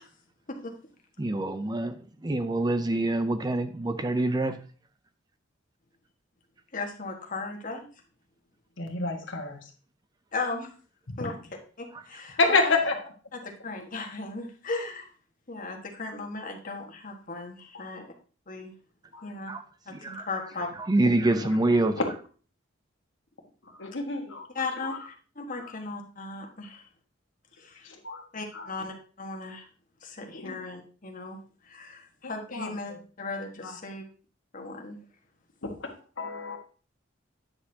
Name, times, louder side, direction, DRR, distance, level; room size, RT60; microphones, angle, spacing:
voice 1, 1.2-4.6 11.9-12.0 19.5-19.6 19.9-20.3 20.8-22.0, right 2 dB, 20° right, 9 dB, 0.5 m, -26 dB
voice 2, 6.7-7.9 10.3-10.7 11.2-11.4 11.8-12.8 13.3-15.1 15.5-18.1 18.5-18.7 19.2-19.5 19.9-20.7 24.5-26.8 27.6-27.9 28.3-29.6 30.0-34.0 34.5-35.0, left 3 dB, 45° left, 2 dB, 1.5 m, -37 dB
voice 3, 8.8-9.6 11.2-11.3 12.4-12.9 19.1-19.2 21.4-21.5 23.7-24.4 27.9-28.2 28.5-28.6 30.3-30.7 32.5-32.7 33.6-33.7 35.6-35.9 36.2-36.6, left 3 dB, 70° left, 3 dB, 1.6 m, -28 dB
9.6 x 6.5 x 2.8 m, 0.39 s
head